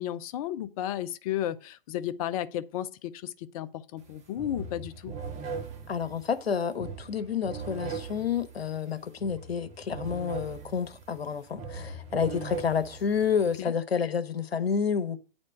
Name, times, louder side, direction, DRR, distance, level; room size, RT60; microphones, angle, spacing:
voice 1, 0.0-5.1 13.6-13.7, left 11 dB, 35° left, 0.7 m, -33 dB
sound 1, 4.0-4.1 4.4-13.6, right 5 dB, 25° right, 1.6 m, -40 dB
voice 2, 5.9-15.2, left 7 dB, 80° left, 1.2 m, -29 dB
9.4 x 4.4 x 6.5 m
hypercardioid pair, 125°, 30 cm